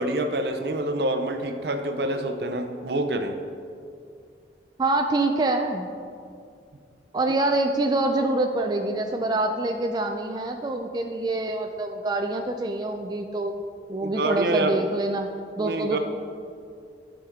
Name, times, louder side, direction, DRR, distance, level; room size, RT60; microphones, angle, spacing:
voice 1, 0.0-3.4 14.0-14.8 15.6-16.0, right 1 dB, 65° right, 6 dB, 0.6 m, -26 dB
voice 2, 4.8-5.9 7.1-13.5 13.9-15.3 15.6-16.0, right 2 dB, 25° right, 4 dB, 0.3 m, -25 dB
11.5 x 5.0 x 3.6 m, 2.3 s
head